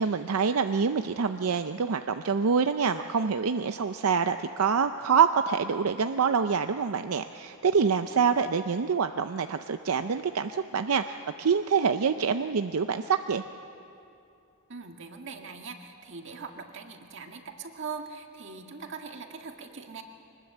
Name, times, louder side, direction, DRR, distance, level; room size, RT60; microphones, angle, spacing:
voice 1, 0.0-13.4, right 6 dB, 85° right, 8 dB, 0.6 m, -26 dB
voice 2, 14.7-20.0, right 5 dB, 60° right, 4 dB, 1.8 m, -41 dB
23.5 x 20.0 x 7.9 m, 2.6 s
head